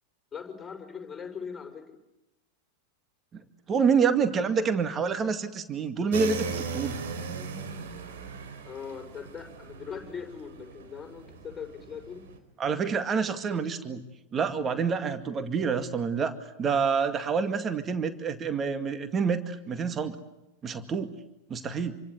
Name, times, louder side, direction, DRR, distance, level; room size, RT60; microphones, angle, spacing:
voice 1, 0.3-2.0 8.6-12.2, left 6 dB, 15° left, 4 dB, 6.0 m, -40 dB
voice 2, 3.7-6.9 12.6-14.0 14.3-20.2 20.6-21.1 21.5-22.0, right 5 dB, 25° right, 9 dB, 2.1 m, -27 dB
sound 1, 6.1-12.4, right 5 dB, 60° right, 4.4 m, -38 dB
28.5 x 24.5 x 8.1 m, 0.93 s
figure-of-eight pair, 90°, 0 cm